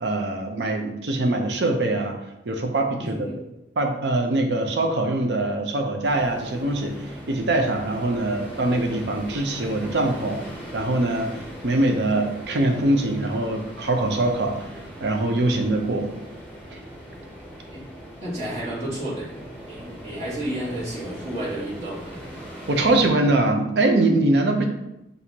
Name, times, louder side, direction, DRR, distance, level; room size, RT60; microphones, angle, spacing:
voice 1, 0.0-2.2 2.5-3.3 3.8-6.9 7.3-10.4 10.7-11.3 11.6-14.7 15.0-16.1 22.7-24.6, right 2 dB, 75° right, 3 dB, 0.6 m, -23 dB
voice 2, 3.0-3.4 8.2-8.4 17.7-17.8 18.2-19.3 19.7-22.2, right 1 dB, 35° right, -8 dB, 1.5 m, -31 dB
sound 1, 6.0-23.1, equal, 10° left, 1.0 m, -40 dB
5.9 x 2.7 x 2.8 m, 0.89 s
head